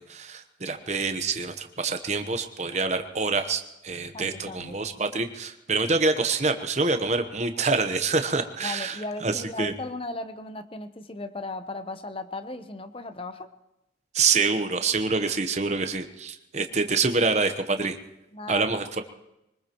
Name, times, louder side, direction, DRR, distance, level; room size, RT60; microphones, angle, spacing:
voice 1, 0.0-9.7 14.1-18.0 18.5-19.0, right 4 dB, 35° right, 7 dB, 1.0 m, -26 dB
voice 2, 4.1-4.8 8.6-13.5 18.3-18.7, left 2 dB, 30° left, 10 dB, 0.8 m, -36 dB
23.5 x 20.0 x 3.0 m, 0.90 s
head